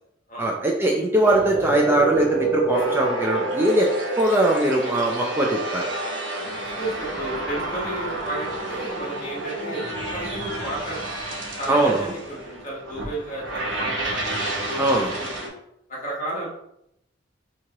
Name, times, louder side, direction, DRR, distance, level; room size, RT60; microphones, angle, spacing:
voice 1, 0.4-5.8 11.7-12.1 14.8-15.1, right 1 dB, 15° right, -1 dB, 0.4 m, -21 dB
sound 1, 1.2-15.5, right 2 dB, 90° right, 0.9 m, -29 dB
voice 2, 6.6-11.0 11.6-14.2 14.7-15.5 15.9-16.5, right 1 dB, 45° left, -5 dB, 1.3 m, -33 dB
3.4 x 2.9 x 2.9 m, 0.78 s
head